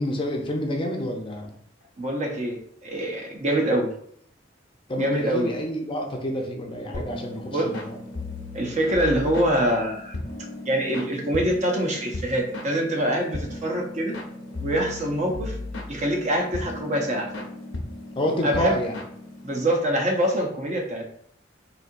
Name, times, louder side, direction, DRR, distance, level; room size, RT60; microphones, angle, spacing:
voice 1, 0.0-1.6 4.9-8.0 18.2-19.0, equal, 30° left, 2 dB, 0.5 m, -28 dB
voice 2, 2.0-3.9 5.0-5.5 6.9-7.1 7.5-7.7 8.5-10.1 10.7-14.1 14.6-15.6 15.9-17.3 18.4-18.8 19.4-21.0, right 1 dB, 40° right, 1 dB, 0.7 m, -25 dB
sound 1, 6.9-19.7, left 2 dB, 85° left, 0.7 m, -36 dB
4.2 x 2.7 x 2.5 m, 0.66 s
head